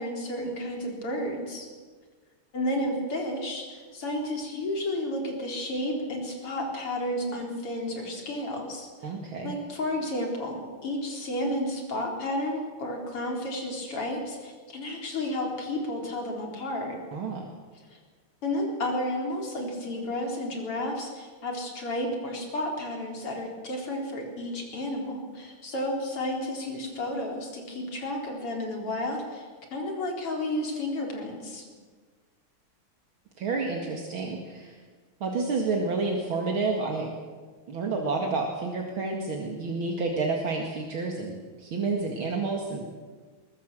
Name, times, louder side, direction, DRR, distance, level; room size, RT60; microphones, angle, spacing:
voice 1, 0.0-1.7 2.5-9.1 9.4-17.0 17.9-18.0 18.4-31.7, left 1 dB, 85° left, 1 dB, 4.9 m, -32 dB
voice 2, 9.0-9.6 17.1-17.4 33.4-34.8 35.2-37.1 37.7-42.9, right 3 dB, 65° right, 1 dB, 2.9 m, -29 dB
22.5 x 21.5 x 7.7 m, 1.5 s
omnidirectional pair, 2.4 m